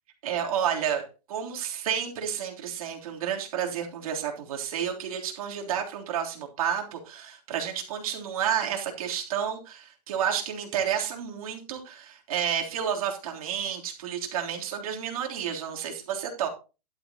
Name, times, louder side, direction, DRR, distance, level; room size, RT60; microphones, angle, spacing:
voice 1, 0.2-16.5, right 8 dB, 60° right, 1 dB, 3.4 m, -30 dB
12.0 x 12.0 x 2.9 m, 0.31 s
supercardioid pair, 170°, 21 cm